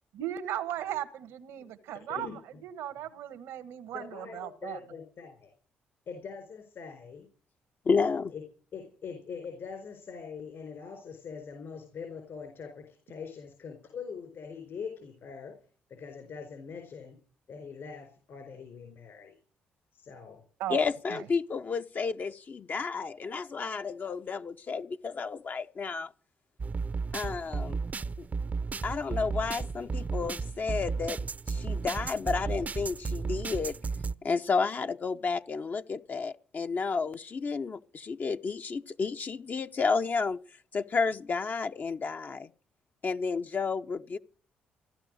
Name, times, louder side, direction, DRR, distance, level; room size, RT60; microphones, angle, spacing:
voice 1, 0.1-2.3 2.6-4.8 20.6-20.8 21.1-21.2, right 11 dB, 85° right, 1.5 m, -36 dB
voice 2, 3.9-5.5 6.1-7.3 8.3-8.4 8.7-15.5 15.9-17.1 17.5-19.4 19.9-20.4, left 6 dB, 65° left, 4.4 m, -43 dB
voice 3, 7.8-8.3 20.7-26.1 27.1-27.8 28.2-28.3 28.8-31.2 31.5-33.8 34.2-40.4 40.7-42.5 43.0-44.2, left 5 dB, 45° left, 0.8 m, -31 dB
sound 1, 26.6-34.1, right 4 dB, 40° right, 0.7 m, -34 dB
16.0 x 12.0 x 6.3 m
supercardioid pair, 60°, 4 cm